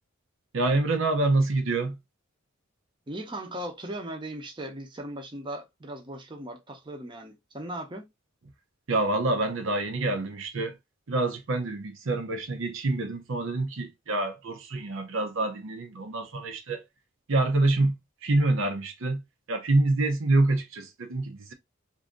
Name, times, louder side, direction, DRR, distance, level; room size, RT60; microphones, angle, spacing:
voice 1, 0.5-2.0 8.9-10.7 11.1-16.8 17.3-18.0 18.2-19.2 19.5-21.5, right 2 dB, 70° right, 0.7 m, -26 dB
voice 2, 3.1-8.1, right 1 dB, 25° right, 0.8 m, -38 dB
2.7 x 2.6 x 3.6 m
head